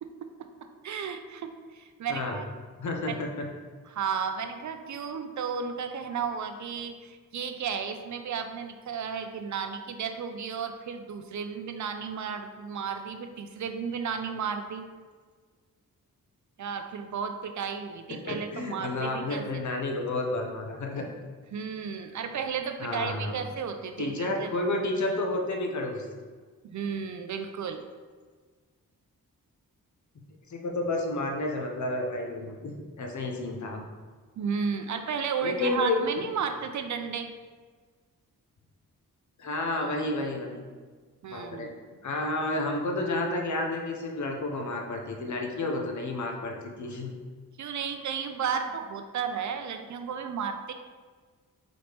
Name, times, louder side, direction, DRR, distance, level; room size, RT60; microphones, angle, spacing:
voice 1, 0.0-2.5 3.1-3.2 3.9-14.8 16.6-19.6 21.5-24.5 26.6-27.8 34.4-37.3 41.2-41.7 47.6-50.7, right 6 dB, 55° right, 7 dB, 0.4 m, -33 dB
voice 2, 2.8-3.5 18.1-21.1 22.8-23.4 24.0-26.0 30.5-32.7 33.0-33.8 35.4-36.0 39.4-40.6 41.3-41.7 42.0-47.1, left 2 dB, 55° left, 2 dB, 0.8 m, -31 dB
4.1 x 3.2 x 3.0 m, 1.5 s
cardioid pair, 50°, 35 cm